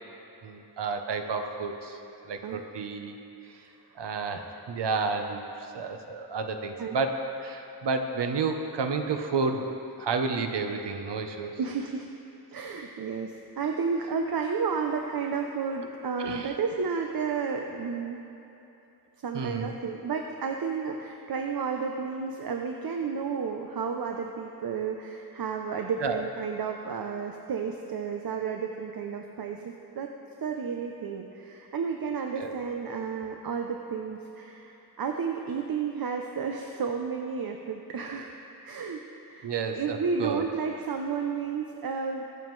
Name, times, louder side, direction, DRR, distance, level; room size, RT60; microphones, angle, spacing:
voice 1, 0.4-3.2 4.0-5.4 5.7-9.7 10.0-11.6 16.2-16.5 19.3-19.7 26.0-26.2 32.4-32.5 39.4-40.5, right 4 dB, 85° right, 5 dB, 0.9 m, -31 dB
voice 2, 11.6-12.1 12.5-18.2 19.2-30.1 30.4-38.3 38.6-39.0 39.3-42.2, right 5 dB, 60° right, 3 dB, 0.7 m, -32 dB
21.5 x 7.2 x 3.2 m, 3.0 s
wide cardioid pair, 135°, 40 cm